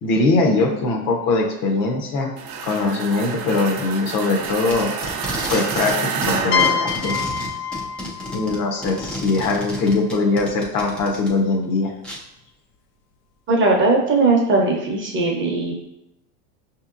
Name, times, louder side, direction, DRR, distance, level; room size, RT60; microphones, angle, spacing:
voice 1, 0.0-2.3 2.6-4.9 5.5-7.2 8.3-11.9, left 3 dB, 45° left, 3 dB, 0.7 m, -21 dB
sound 1, 2.4-7.6, right 6 dB, 60° right, 0.7 m, -29 dB
Packing tape duct tape, 4.2-6.0 6.2-11.3 12.0-12.2, equal, 5° left, 0.3 m, -31 dB
sound 2, 6.5-10.1, left 7 dB, 80° left, 0.7 m, -26 dB
voice 2, 13.5-15.7, right 3 dB, 25° right, 0 dB, 0.8 m, -18 dB
5.2 x 2.8 x 2.5 m, 0.85 s
supercardioid pair, 120°, 47 cm